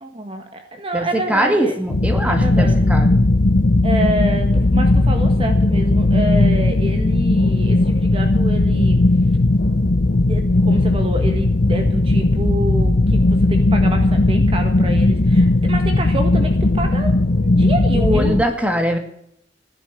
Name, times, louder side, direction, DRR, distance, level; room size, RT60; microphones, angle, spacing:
voice 1, 0.0-1.7 2.3-2.9 3.8-9.0 10.3-18.4, right 1 dB, 30° right, 5 dB, 1.6 m, -27 dB
voice 2, 0.9-3.2 17.9-19.0, equal, 5° right, 4 dB, 2.2 m, -21 dB
sound 1, 1.9-18.4, left 2 dB, 55° left, 0.8 m, -16 dB
16.0 x 10.5 x 7.4 m, 0.74 s
head